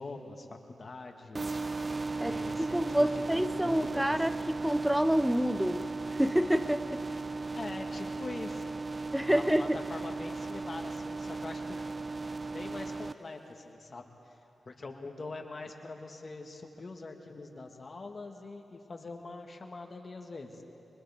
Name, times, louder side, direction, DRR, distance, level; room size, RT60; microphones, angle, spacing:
voice 1, 0.0-1.5 2.2-4.5 7.5-8.8 9.1-11.9 12.1-12.3 12.5-14.4 14.6-20.6, left 3 dB, 45° left, 3 dB, 1.7 m, -44 dB
sound 1, 1.3-13.1, right 3 dB, 35° right, 0.4 m, -36 dB
voice 2, 2.2-7.0 9.1-9.8, equal, 5° right, 12 dB, 0.8 m, -28 dB
29.5 x 24.5 x 3.6 m, 3.0 s
cardioid pair, 65°, 0 cm